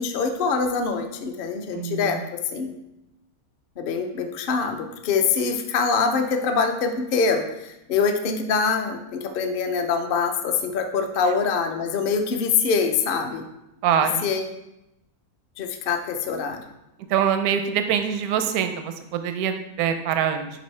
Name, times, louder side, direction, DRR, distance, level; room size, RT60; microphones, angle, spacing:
voice 1, 0.0-2.2 2.5-2.7 3.8-13.4 14.2-14.4 15.6-16.6, left 5 dB, 55° left, 5 dB, 0.6 m, -24 dB
voice 2, 1.7-2.3 11.3-11.4 13.8-14.2 17.1-20.5, right 8 dB, 80° right, 8 dB, 1.1 m, -24 dB
8.0 x 5.3 x 3.2 m, 0.90 s
omnidirectional pair, 1.6 m